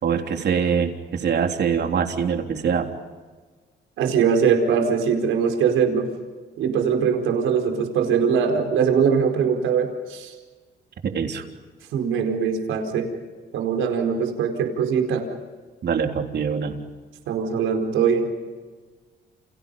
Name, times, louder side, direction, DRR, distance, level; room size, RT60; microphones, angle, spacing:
voice 1, 0.0-2.9 11.0-11.4 15.8-16.8, right 6 dB, 60° right, 4 dB, 3.5 m, -24 dB
voice 2, 4.0-6.1 6.6-10.3 11.9-13.1 13.5-15.3 17.3-18.3, right 6 dB, 90° right, 3 dB, 4.6 m, -21 dB
30.0 x 29.0 x 5.6 m, 1.4 s
cardioid pair, 90°, 20 cm